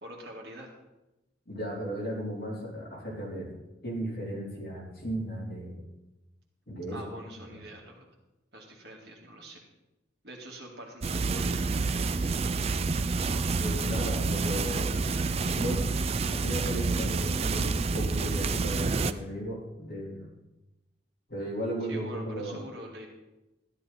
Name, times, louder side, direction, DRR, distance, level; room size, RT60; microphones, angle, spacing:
voice 1, 0.0-0.7 6.9-8.0 8.5-9.6 10.2-11.6 21.9-23.1, right 1 dB, 60° right, 0 dB, 2.2 m, -44 dB
voice 2, 1.5-3.5 3.8-5.8 6.7-7.0 7.3-7.6 13.6-15.1 15.5-15.9 16.3-20.3 21.3-22.6, equal, 55° left, -4 dB, 3.7 m, -35 dB
sound 1, 11.0-19.1, right 4 dB, 35° right, 0.4 m, -28 dB
13.0 x 10.5 x 4.3 m, 0.98 s
head